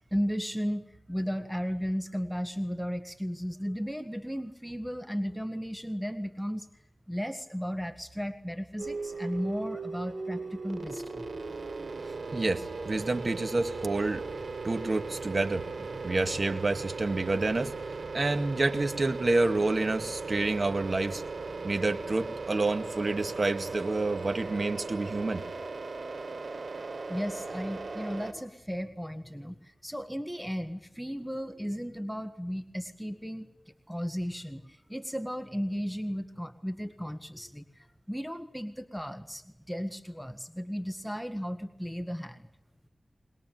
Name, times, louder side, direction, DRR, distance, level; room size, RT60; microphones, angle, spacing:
voice 1, 0.1-6.7 7.1-11.3 27.1-33.5 33.9-42.5, equal, ahead, 8 dB, 1.6 m, -35 dB
sound 1, 8.8-28.3, right 3 dB, 75° right, 3.5 m, -38 dB
voice 2, 12.3-14.2 14.6-17.7 18.1-21.2 21.6-25.4, right 2 dB, 50° right, 7 dB, 2.0 m, -28 dB
22.5 x 21.0 x 9.4 m, 0.83 s
wide cardioid pair, 70°, 0 cm